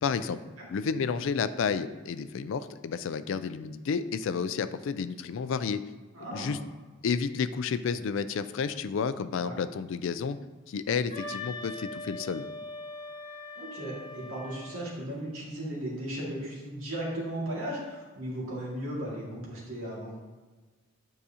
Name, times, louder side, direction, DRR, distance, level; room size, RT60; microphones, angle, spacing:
voice 1, 0.0-0.4 0.7-5.8 6.3-6.6 7.0-10.4 10.7-12.4, left 6 dB, 65° left, 12 dB, 0.4 m, -31 dB
voice 2, 6.1-6.6 9.4-9.6 13.6-20.2, right 1 dB, 80° right, -5 dB, 2.0 m, -36 dB
Wind instrument woodwind instrument, 11.1-14.9, left 2 dB, 35° left, 1.5 m, -41 dB
9.2 x 4.8 x 2.8 m, 1.3 s
head